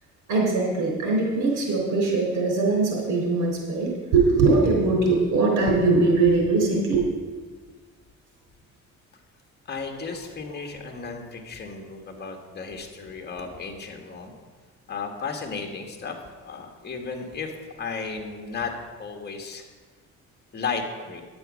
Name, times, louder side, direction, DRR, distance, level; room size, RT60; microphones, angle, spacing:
voice 1, 0.3-7.0, right 3 dB, 75° right, 0 dB, 3.7 m, -21 dB
voice 2, 9.7-14.3 14.9-16.2 16.4-18.7 19.0-19.6 20.5-21.2, left 5 dB, 35° left, 3 dB, 1.7 m, -34 dB
10.0 x 7.2 x 6.3 m, 1.4 s
cardioid pair, 90°, 30 cm